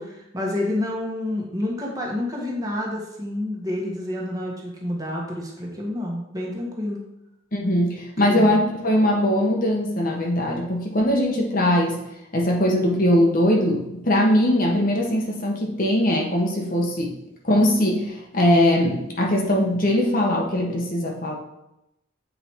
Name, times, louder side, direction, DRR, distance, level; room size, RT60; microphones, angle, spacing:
voice 1, 0.0-7.0 8.3-8.6, left 1 dB, 20° right, -2 dB, 1.6 m, -29 dB
voice 2, 7.5-12.0 12.3-17.2 17.4-21.4, left 1 dB, 45° left, 0 dB, 1.3 m, -21 dB
8.1 x 5.0 x 4.7 m, 0.84 s
head